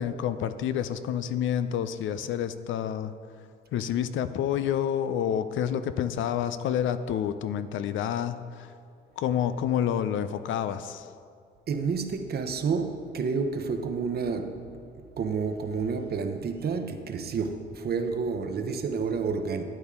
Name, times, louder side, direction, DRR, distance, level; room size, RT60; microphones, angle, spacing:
voice 1, 0.0-3.1 3.7-8.7 9.2-11.1, left 9 dB, 75° left, 0.6 m, -28 dB
voice 2, 11.7-14.8 15.2-19.6, right 5 dB, 50° right, 0.9 m, -30 dB
12.0 x 8.8 x 3.7 m
cardioid pair, 90°, 20 cm